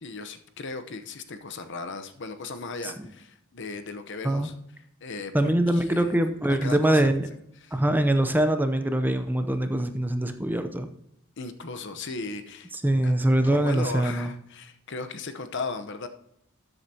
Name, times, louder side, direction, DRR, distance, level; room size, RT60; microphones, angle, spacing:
voice 1, 0.0-4.5 5.0-6.2 6.6-7.1 7.6-7.8 11.4-12.7 13.0-13.1 13.4-16.1, left 3 dB, 60° left, 9 dB, 0.9 m, -37 dB
voice 2, 5.3-7.3 7.7-10.9 12.7-14.3, right 1 dB, 10° right, 8 dB, 0.7 m, -23 dB
13.0 x 8.1 x 2.8 m, 0.76 s
head